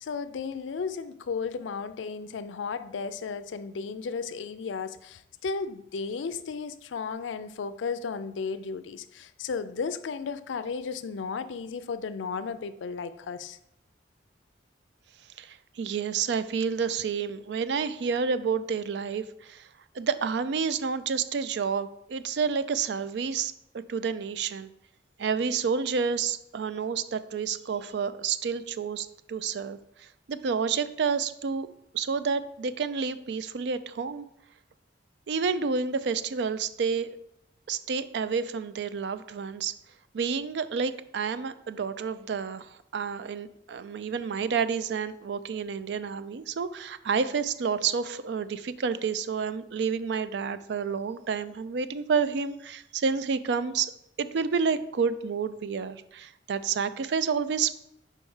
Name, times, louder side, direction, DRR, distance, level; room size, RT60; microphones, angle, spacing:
voice 1, 0.0-13.6, left 5 dB, 90° left, 13 dB, 0.4 m, -34 dB
voice 2, 15.4-19.7 19.9-24.7 25.2-31.7 31.9-34.3 35.3-37.2 37.7-39.7 40.1-53.9 54.2-57.7, right 5 dB, 65° right, 13 dB, 0.4 m, -29 dB
4.5 x 4.5 x 5.5 m, 0.78 s
head